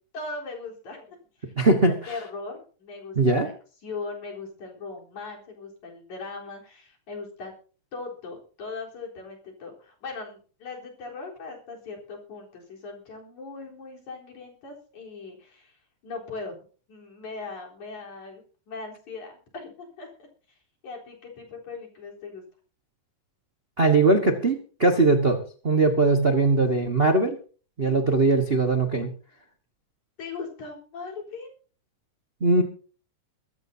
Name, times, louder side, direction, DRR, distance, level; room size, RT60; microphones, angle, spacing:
voice 1, 0.1-3.5 3.8-7.5 7.9-15.8 16.0-16.6 16.9-20.3 20.8-22.4 30.2-31.5, left 3 dB, 65° left, -1 dB, 5.3 m, -39 dB
voice 2, 1.6-1.9 3.1-3.5 23.8-27.4 27.8-29.1 32.4-32.6, right 3 dB, 60° right, 4 dB, 0.5 m, -20 dB
23.5 x 13.0 x 2.8 m, 0.40 s
omnidirectional pair, 3.6 m